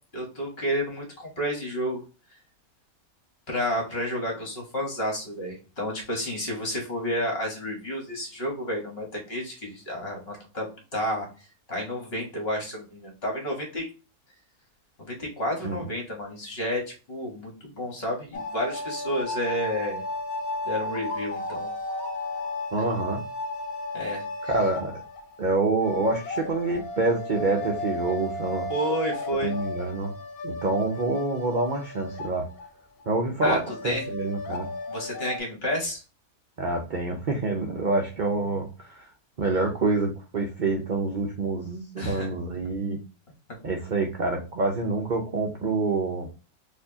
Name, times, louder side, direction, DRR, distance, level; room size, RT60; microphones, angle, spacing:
voice 1, 0.1-2.0 3.5-13.9 15.0-20.0 20.6-21.7 23.9-24.5 28.7-29.5 33.4-33.6 33.8-34.1 34.9-36.0 42.0-42.3 43.5-43.6, equal, 40° left, 0 dB, 1.5 m, -31 dB
sound 1, 18.3-32.7 33.0-33.1 33.4-35.4, left 2 dB, 75° left, 1.2 m, -34 dB
voice 2, 22.7-23.2 24.5-24.9 25.4-28.7 29.4-30.1 30.4-32.5 33.1-34.7 36.6-39.1 39.4-43.0 43.6-46.3, right 3 dB, 55° right, 2 dB, 0.5 m, -27 dB
4.4 x 2.7 x 2.8 m, 0.33 s
omnidirectional pair, 1.6 m